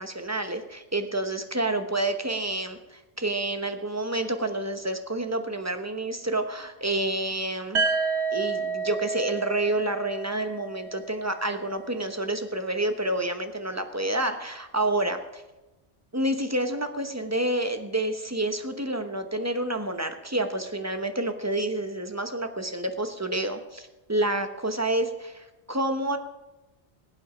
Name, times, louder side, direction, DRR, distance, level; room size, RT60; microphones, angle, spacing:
voice 1, 0.0-7.9 8.3-15.4 16.1-26.2, right 1 dB, 15° right, 7 dB, 0.9 m, -29 dB
sound 1, 7.7-11.6, right 4 dB, 85° right, 1.5 m, -30 dB
19.5 x 8.4 x 5.1 m, 1.0 s
omnidirectional pair, 1.1 m